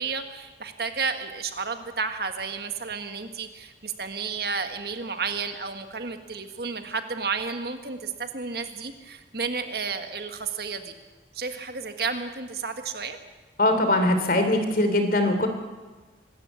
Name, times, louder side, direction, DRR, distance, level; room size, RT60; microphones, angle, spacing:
voice 1, 0.0-10.9 11.3-13.2, right 5 dB, 55° right, 7 dB, 1.6 m, -32 dB
voice 2, 13.6-15.5, left 1 dB, 50° left, 7 dB, 3.3 m, -21 dB
25.5 x 13.0 x 8.4 m, 1.3 s
head